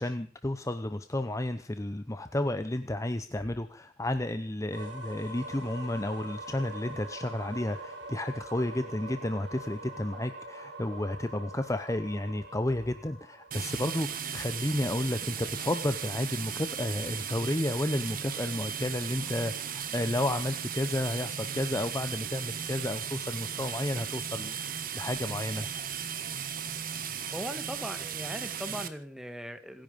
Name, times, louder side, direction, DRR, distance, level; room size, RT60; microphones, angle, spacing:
voice 1, 0.0-24.5 24.9-25.7, left 1 dB, 15° left, 9 dB, 0.8 m, -32 dB
sound 1, 4.7-16.5, right 1 dB, 80° right, 4.3 m, -44 dB
sound 2, 13.5-28.9, right 8 dB, 50° right, 1.5 m, -36 dB
voice 2, 27.3-29.8, equal, ahead, 9 dB, 1.6 m, -39 dB
26.5 x 10.5 x 5.3 m, 0.40 s
head